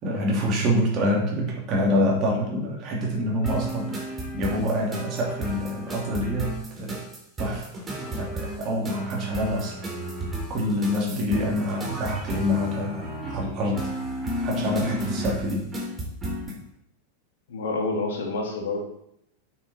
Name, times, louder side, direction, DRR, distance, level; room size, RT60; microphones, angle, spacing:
voice 1, 0.0-7.0 7.4-7.7 8.2-9.7 10.5-13.8 14.4-15.6, left 1 dB, 35° right, -2 dB, 2.8 m, -26 dB
sound 1, 3.4-16.6, right 1 dB, 15° right, 3.5 m, -33 dB
voice 2, 17.5-18.8, left 3 dB, 60° left, 1 dB, 2.4 m, -28 dB
9.1 x 7.7 x 4.4 m, 0.78 s
figure-of-eight pair, 90°, 0 cm